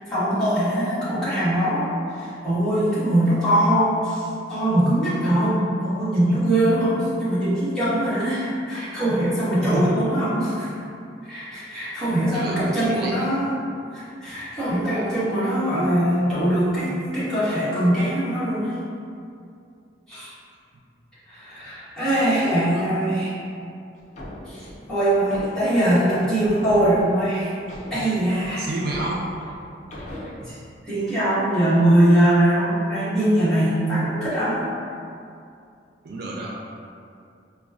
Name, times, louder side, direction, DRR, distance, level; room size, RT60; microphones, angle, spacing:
voice 1, 0.1-10.7 11.3-13.5 13.9-18.8 20.1-20.3 21.3-23.3 24.5-27.5 27.9-28.7 30.4-30.6 30.8-34.6, right 1 dB, 5° left, -14 dB, 1.3 m, -22 dB
voice 2, 9.6-10.0 12.3-13.3 22.0-22.9 28.6-29.3 36.0-36.5, right 2 dB, 55° right, -3 dB, 0.4 m, -31 dB
sound 1, 24.0-27.3 27.7-30.3, left 1 dB, 40° left, 0.5 m, -39 dB
4.9 x 2.2 x 2.4 m, 2.5 s
head